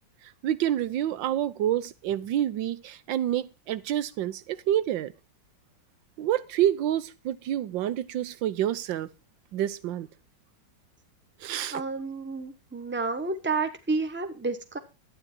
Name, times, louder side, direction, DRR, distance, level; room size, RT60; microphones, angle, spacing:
voice 1, 0.4-5.1 6.2-9.1 9.5-10.1 11.4-11.8, right 11 dB, 90° right, 1.5 m, -28 dB
voice 2, 11.7-14.8, right 3 dB, 5° right, 1.0 m, -30 dB
12.5 x 9.5 x 4.5 m
omnidirectional pair, 2.0 m